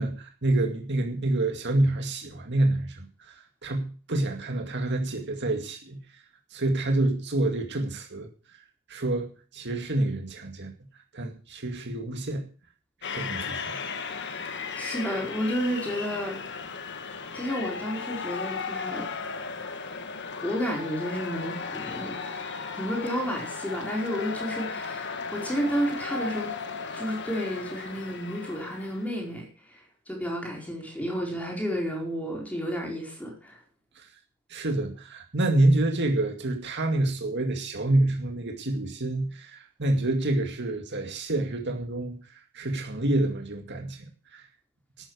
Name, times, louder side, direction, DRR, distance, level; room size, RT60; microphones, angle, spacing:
voice 1, 0.0-6.0 6.5-8.3 8.9-10.7 11.1-12.4 13.1-13.8 34.0-34.1 34.5-44.4, right 2 dB, 50° right, 4 dB, 2.2 m, -27 dB
sound 1, 13.0-29.2, left 5 dB, 50° left, 1.7 m, -36 dB
voice 2, 14.7-16.5 17.3-19.1 20.4-22.5 22.8-26.5 26.9-29.5 30.1-33.6, equal, 5° left, 0 dB, 4.9 m, -31 dB
12.5 x 9.6 x 6.5 m, 0.38 s
head